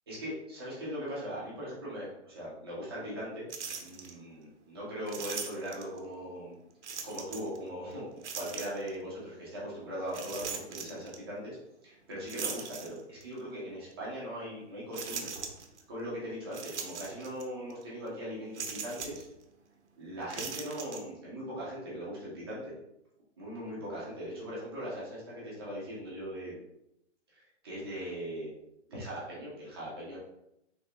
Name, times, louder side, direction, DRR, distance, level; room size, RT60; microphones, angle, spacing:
voice 1, 0.1-3.5 3.8-6.6 7.0-11.6 11.8-15.3 15.9-19.2 20.0-22.7 23.4-26.5 27.3-28.5 28.9-30.2, equal, 20° right, -7 dB, 0.8 m, -40 dB
sound 1, 3.5-4.1 5.1-6.0 6.8-7.6 8.2-9.0 10.1-11.2 12.3-13.3 13.9-14.0 14.9-15.8 16.5-17.5 17.7-17.8 18.5-19.3 20.2-21.0, right 6 dB, 70° right, 0.7 m, -39 dB
3.3 x 3.2 x 2.3 m, 0.83 s
hypercardioid pair, 170°, 36 cm